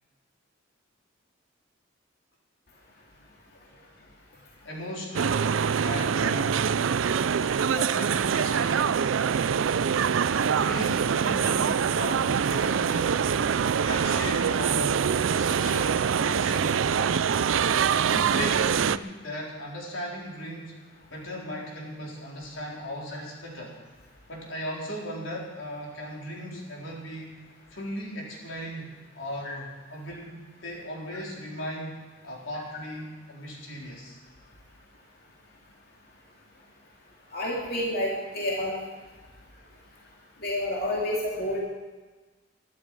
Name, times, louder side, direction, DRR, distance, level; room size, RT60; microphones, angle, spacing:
voice 1, 4.6-6.6 7.7-9.1 10.1-13.2 13.8-17.4 18.1-20.7 21.1-23.8 24.3-27.4 27.7-32.0 32.2-34.2, equal, 85° left, -3 dB, 4.3 m, -37 dB
sound 1, 5.1-19.0, right 7 dB, 90° right, 0.4 m, -24 dB
voice 2, 37.3-38.7 40.4-41.6, left 1 dB, 50° left, -3 dB, 2.7 m, -29 dB
22.5 x 11.5 x 4.8 m, 1.3 s
head